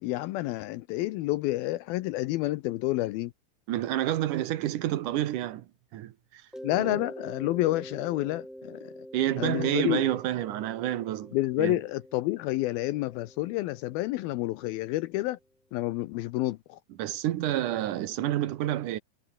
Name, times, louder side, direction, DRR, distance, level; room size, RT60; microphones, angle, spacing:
voice 1, 0.0-3.3 6.6-8.9 9.4-10.0 11.3-15.4 15.7-16.8, left 17 dB, 80° left, 2.4 m, -29 dB
voice 2, 3.7-5.7 5.9-6.4 6.8-7.0 9.1-11.8 17.0-19.0, right 13 dB, 65° right, 2.2 m, -29 dB
Mallet percussion, 6.5-15.1, equal, ahead, 0.4 m, -46 dB
omnidirectional pair, 4.5 m